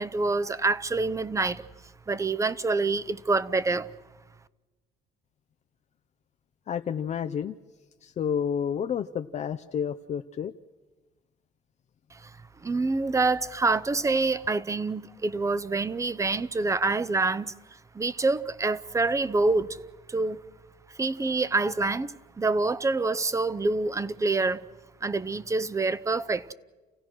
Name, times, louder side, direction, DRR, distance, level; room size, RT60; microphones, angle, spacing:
voice 1, 0.0-1.6 2.1-3.9 12.1-19.8 20.1-20.4 21.0-24.7 25.0-26.5, right 3 dB, 20° right, 0.7 m, -26 dB
voice 2, 6.7-7.6 8.0-10.5, left 8 dB, 40° left, 0.6 m, -30 dB
30.0 x 16.0 x 6.2 m
cardioid pair, 110°, 17 cm